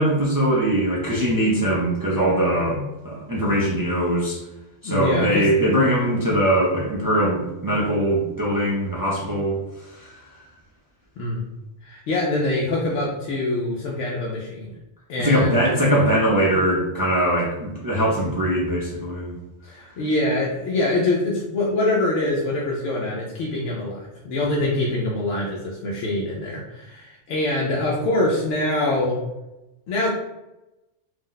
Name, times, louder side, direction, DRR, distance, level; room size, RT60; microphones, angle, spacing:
voice 1, 0.0-4.4 4.8-9.6 10.0-10.1 15.2-19.3, right 1 dB, 35° right, -5 dB, 0.3 m, -21 dB
voice 2, 4.8-5.5 11.2-11.4 11.8-14.7 15.1-15.6 19.6-29.2 29.9-30.1, left 2 dB, 85° left, -4 dB, 1.0 m, -24 dB
2.7 x 2.1 x 3.8 m, 0.96 s
omnidirectional pair, 1.2 m